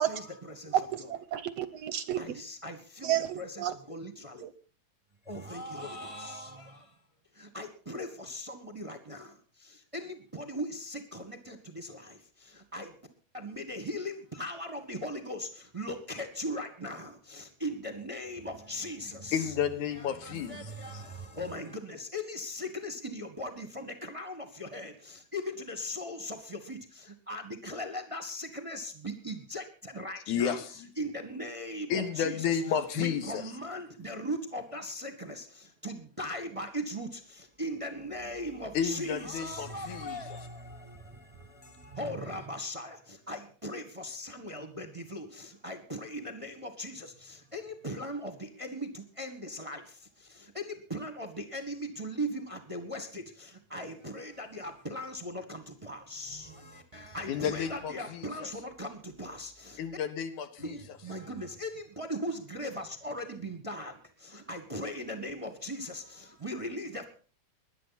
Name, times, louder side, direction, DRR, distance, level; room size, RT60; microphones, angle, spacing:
voice 1, 0.0-1.1 2.1-4.5 5.2-6.9 7.3-13.0 13.3-19.4 20.2-30.6 31.0-32.4 33.0-59.8 60.6-67.0, equal, 15° right, 6 dB, 1.2 m, -39 dB
voice 2, 0.7-2.2 3.0-3.7, right 11 dB, 70° right, 14 dB, 1.7 m, -30 dB
voice 3, 19.3-21.0 30.3-30.9 31.9-33.5 38.7-40.5 57.3-58.5 59.8-61.0, left 8 dB, 80° left, 10 dB, 2.8 m, -32 dB
20.5 x 11.0 x 4.2 m, 0.40 s
omnidirectional pair, 3.4 m